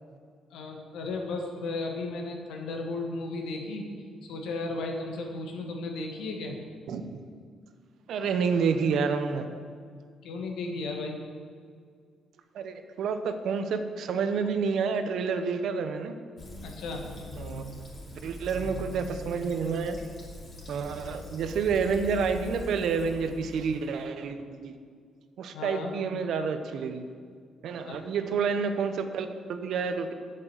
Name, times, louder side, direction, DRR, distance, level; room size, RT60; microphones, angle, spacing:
voice 1, 0.5-3.8 4.2-6.6 10.2-11.2 16.6-17.1 25.5-25.9 27.9-28.3, left 3 dB, 85° left, 2 dB, 1.6 m, -35 dB
voice 2, 8.1-9.5 12.5-16.1 17.4-17.6 18.2-20.0 20.7-24.8 25.4-27.0 27.6-30.1, right 5 dB, 70° right, 8 dB, 0.8 m, -29 dB
Fill (with liquid), 16.4-24.0, equal, 40° left, 2.8 m, -42 dB
7.7 x 7.6 x 7.9 m, 2.1 s
cardioid pair, 90°, 0 cm